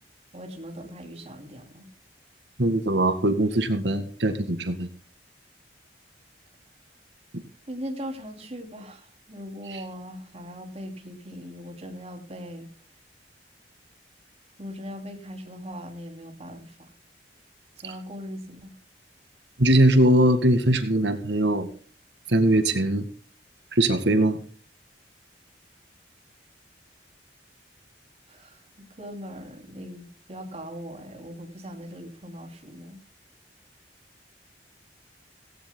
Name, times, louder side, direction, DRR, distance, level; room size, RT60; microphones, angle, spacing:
voice 1, 0.3-1.9 7.7-12.7 14.6-16.9 17.8-18.7 28.3-33.0, equal, 35° right, 4 dB, 2.9 m, -40 dB
voice 2, 2.6-4.9 9.7-9.8 19.6-21.7 22.3-23.1 23.7-24.4, right 1 dB, 85° right, 10 dB, 1.9 m, -21 dB
17.0 x 17.0 x 2.2 m, 0.43 s
head